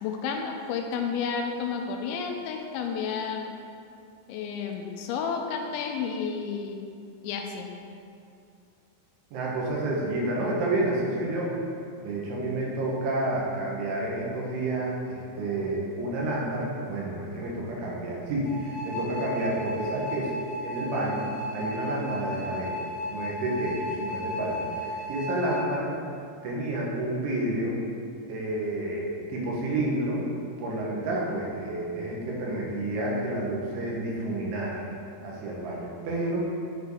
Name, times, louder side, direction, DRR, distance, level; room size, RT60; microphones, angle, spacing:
voice 1, 0.0-3.5 4.3-6.8 7.2-7.7, left 6 dB, 85° left, 3 dB, 2.9 m, -31 dB
voice 2, 9.3-11.5 12.0-20.3 20.6-21.3 21.5-22.7 23.1-25.9 26.4-27.8 28.3-30.2 30.6-34.8 35.2-36.4, right 1 dB, 90° right, -4 dB, 3.9 m, -30 dB
sound 1, 18.4-25.6, left 1 dB, 65° left, 2.6 m, -35 dB
10.0 x 4.8 x 4.8 m, 2.5 s
omnidirectional pair, 5.3 m